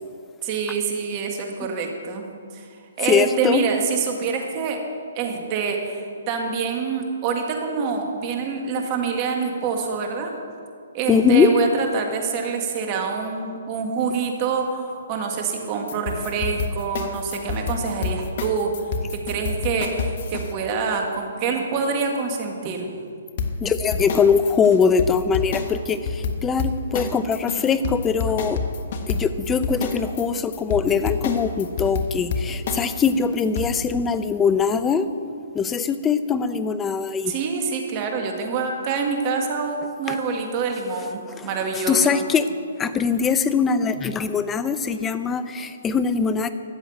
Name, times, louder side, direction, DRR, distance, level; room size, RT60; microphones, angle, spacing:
voice 1, 0.4-2.3 2.5-2.7 3.0-4.8 5.2-10.3 10.9-18.8 19.1-22.9 37.3-42.2, right 5 dB, 35° right, 3 dB, 2.1 m, -26 dB
voice 2, 3.0-3.6 11.1-11.5 23.6-28.6 29.1-35.1 35.5-37.3 40.1-40.2 41.3-42.5 42.8-46.5, left 6 dB, 15° left, 12 dB, 0.7 m, -22 dB
sound 1, 15.9-20.5 23.4-33.8, left 5 dB, 50° left, 1.4 m, -28 dB
13.5 x 8.0 x 8.0 m, 2.3 s
hypercardioid pair, 140°, 0 cm